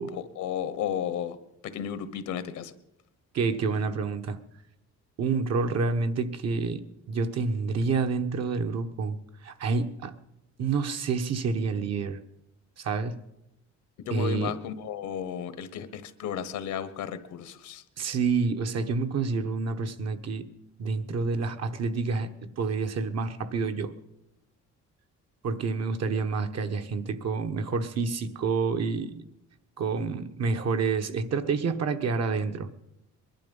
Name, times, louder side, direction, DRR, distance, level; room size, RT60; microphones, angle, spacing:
voice 1, 0.0-1.4 1.6-2.7 14.0-17.8, left 9 dB, 80° left, 13 dB, 1.2 m, -33 dB
voice 2, 3.3-4.4 5.2-6.8 7.1-9.2 9.4-10.1 10.6-12.2 12.8-13.2 14.1-14.5 18.0-20.5 20.8-22.3 22.6-23.9 25.4-29.2 29.8-32.7, right 4 dB, 60° right, 7 dB, 1.2 m, -28 dB
21.5 x 11.5 x 5.5 m, 0.86 s
cardioid pair, 120°, 29 cm